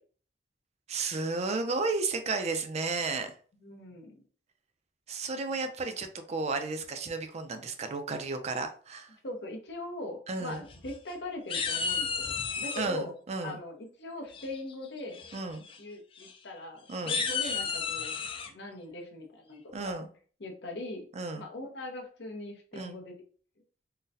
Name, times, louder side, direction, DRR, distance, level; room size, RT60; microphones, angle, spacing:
voice 1, 0.9-3.3 5.1-9.2 10.3-10.6 12.8-13.6 15.3-15.7 16.9-17.2 19.7-20.1 21.1-21.5 22.7-23.0, right 3 dB, 40° right, 7 dB, 0.4 m, -33 dB
voice 2, 3.6-4.1 5.8-5.9 9.2-13.1 13.4-15.2 15.8-18.2 18.4-20.0 20.4-21.0 21.4-23.2, left 1 dB, 70° left, 2 dB, 0.8 m, -41 dB
sound 1, 10.5-11.1 11.5-12.9 14.3-14.7 15.1-15.4 15.6-15.8 16.2-16.3 16.9-18.5, left 5 dB, 30° left, 0.4 m, -32 dB
3.8 x 2.1 x 2.7 m, 0.43 s
head